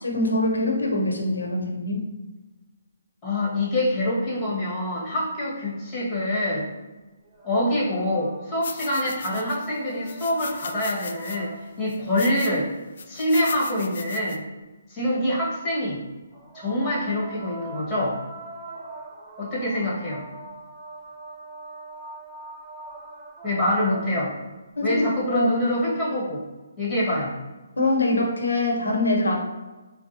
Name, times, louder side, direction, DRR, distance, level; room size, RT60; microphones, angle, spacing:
voice 1, 0.0-2.1 24.8-25.5 27.8-29.5, left 2 dB, 90° left, 0 dB, 0.9 m, -24 dB
voice 2, 3.2-6.7 7.4-12.7 13.1-14.4 14.9-16.0 16.5-18.2 19.4-20.2 23.4-24.3 24.8-26.4 26.8-27.3, left 1 dB, 20° left, -6 dB, 1.5 m, -25 dB
sound 1, 7.2-12.0 16.3-24.6 25.9-26.0, right 1 dB, 10° right, 0.6 m, -42 dB
sound 2, 8.6-9.7 10.1-11.4 11.9-12.6 13.0-14.4, left 6 dB, 60° left, 0.3 m, -38 dB
4.6 x 2.2 x 2.7 m, 1.2 s
hypercardioid pair, 155°, 0 cm